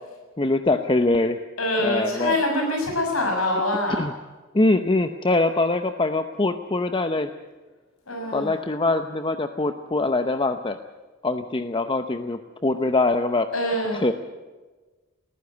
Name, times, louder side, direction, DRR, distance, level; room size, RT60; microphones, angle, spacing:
voice 1, 0.4-1.4 1.8-2.4 3.9-4.1 4.5-7.3 8.3-10.8 11.2-13.5 13.9-14.1, left 2 dB, 25° left, 8 dB, 0.7 m, -23 dB
voice 2, 1.6-4.0 8.1-8.5 13.5-14.0, left 1 dB, 85° left, 2 dB, 6.6 m, -24 dB
20.0 x 15.0 x 9.4 m, 1.3 s
head